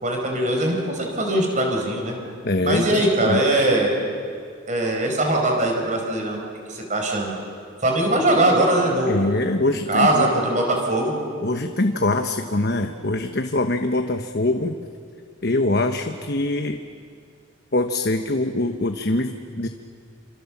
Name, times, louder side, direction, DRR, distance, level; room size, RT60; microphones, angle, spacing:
voice 1, 0.0-2.1 2.6-3.9 4.7-6.4 6.7-7.3 7.8-9.3 9.9-11.2, right 1 dB, 40° right, 1 dB, 4.8 m, -21 dB
voice 2, 2.4-3.4 9.1-10.3 11.4-14.8 15.4-16.8 17.7-19.7, left 2 dB, 55° left, 6 dB, 1.2 m, -23 dB
28.5 x 27.0 x 7.4 m, 2.2 s
head